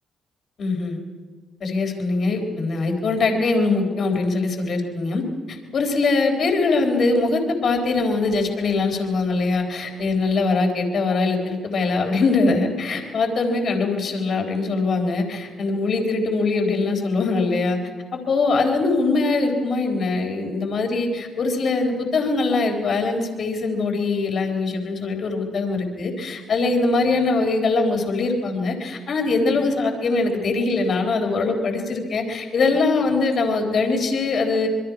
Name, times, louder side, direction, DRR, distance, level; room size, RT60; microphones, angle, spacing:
voice 1, 0.6-1.0 1.6-17.8 18.1-34.7, left 3 dB, 55° left, 4 dB, 3.9 m, -22 dB
26.5 x 22.5 x 4.8 m, 1.5 s
cardioid pair, 90°, 0 cm